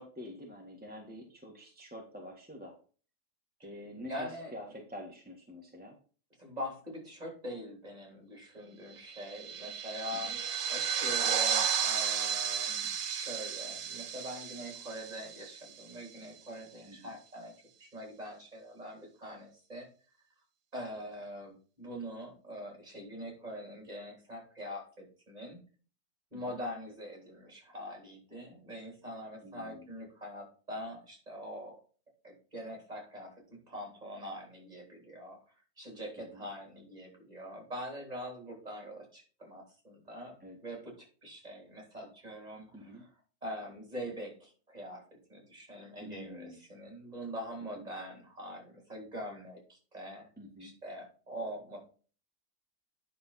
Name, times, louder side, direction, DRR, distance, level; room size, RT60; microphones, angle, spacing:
voice 1, 0.0-2.7 3.6-6.0 10.3-10.4 16.8-17.1 26.3-26.6 29.4-29.9 36.3-36.5 40.4-40.6 42.7-43.0 46.0-46.6 47.7-47.9 50.4-50.7, left 1 dB, 5° right, -1 dB, 1.4 m, -47 dB
voice 2, 4.1-4.5 6.4-10.4 10.7-17.5 17.8-19.9 20.7-25.6 26.3-31.8 32.2-35.4 35.8-43.1 43.4-45.0 45.3-50.3 50.6-51.9, equal, 25° right, 0 dB, 3.6 m, -43 dB
sound 1, 9.1-15.9, right 8 dB, 70° right, 1.3 m, -33 dB
9.5 x 6.1 x 4.1 m, 0.39 s
omnidirectional pair, 1.5 m